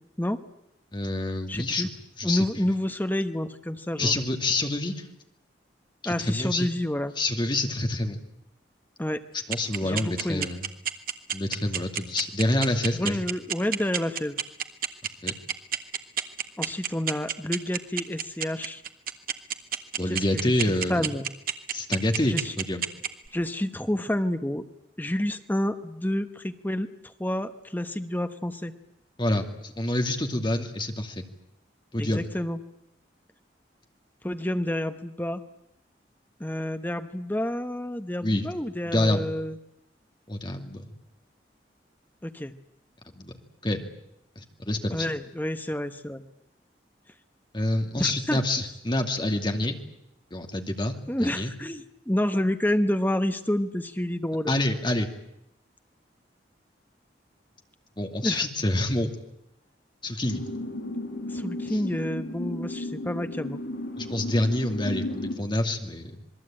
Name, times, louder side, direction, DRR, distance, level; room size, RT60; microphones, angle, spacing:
voice 1, 0.9-1.9 2.2-2.5 4.0-5.1 6.0-6.7 7.2-8.2 9.5-10.7 11.3-13.2 15.2-15.3 20.0-21.1 21.7-22.9 29.2-31.2 31.9-32.3 38.2-38.5 38.8-39.3 40.3-40.8 43.1-43.3 43.6-43.9 44.4-45.1 47.5-49.8 50.3-51.5 54.5-55.1 58.0-59.1 60.0-60.4 61.7-61.8 64.0-66.2, left 1 dB, 25° left, 4 dB, 2.5 m, -27 dB
voice 2, 1.5-1.9 2.2-4.1 6.0-7.1 9.0-9.2 9.8-10.5 12.9-14.4 16.6-18.8 20.1-21.3 22.2-22.5 23.3-24.7 25.0-28.7 32.0-32.6 34.2-35.4 36.4-39.6 42.2-42.5 44.9-46.2 48.0-48.4 51.1-54.5 58.2-58.4 61.3-63.6, left 1 dB, 10° left, 9 dB, 1.0 m, -29 dB
sound 1, 9.5-23.3, right 9 dB, 55° right, 1.6 m, -28 dB
sound 2, 60.3-65.3, left 1 dB, 85° left, 4.6 m, -34 dB
27.0 x 21.5 x 8.8 m, 0.80 s
head